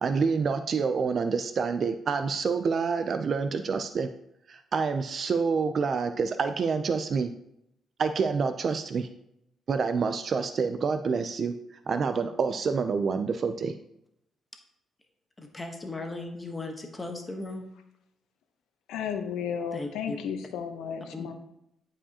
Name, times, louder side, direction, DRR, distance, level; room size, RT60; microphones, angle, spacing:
voice 1, 0.0-4.1 4.5-7.3 8.0-9.1 9.7-11.5 11.9-13.7, right 5 dB, 50° right, 9 dB, 0.4 m, -27 dB
voice 2, 15.4-17.7 19.7-20.2 21.1-21.3, left 2 dB, 20° left, 3 dB, 1.1 m, -37 dB
voice 3, 18.9-21.3, left 7 dB, 85° left, 6 dB, 0.9 m, -33 dB
11.0 x 4.9 x 2.8 m, 0.78 s
cardioid pair, 90°, 0 cm